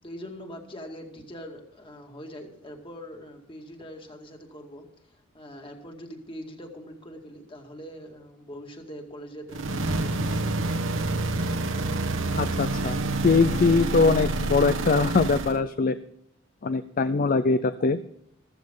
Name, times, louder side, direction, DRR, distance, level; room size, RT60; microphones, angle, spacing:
voice 1, 0.0-10.8, equal, 25° left, 3 dB, 2.3 m, -43 dB
sound 1, 9.5-15.6, right 2 dB, 70° right, 1.3 m, -27 dB
voice 2, 12.4-13.0 13.2-16.0 16.6-18.0, left 4 dB, 45° left, 11 dB, 0.5 m, -22 dB
15.0 x 14.5 x 3.8 m, 0.76 s
head